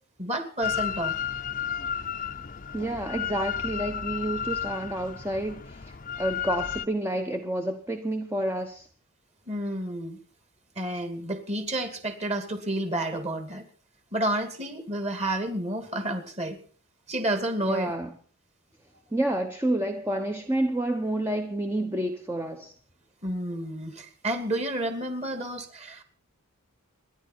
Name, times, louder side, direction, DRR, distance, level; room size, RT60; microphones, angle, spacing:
voice 1, 0.2-1.2 9.5-10.2 10.8-13.6 14.1-16.6 17.1-17.9 23.2-26.0, right 1 dB, 30° right, 2.6 m, -30 dB
Drill, 0.6-6.9, left 8 dB, 40° left, 0.8 m, -33 dB
voice 2, 2.7-8.9 17.6-18.1 19.1-22.7, right 1 dB, 10° right, 1.0 m, -29 dB
27.0 x 11.0 x 4.5 m
head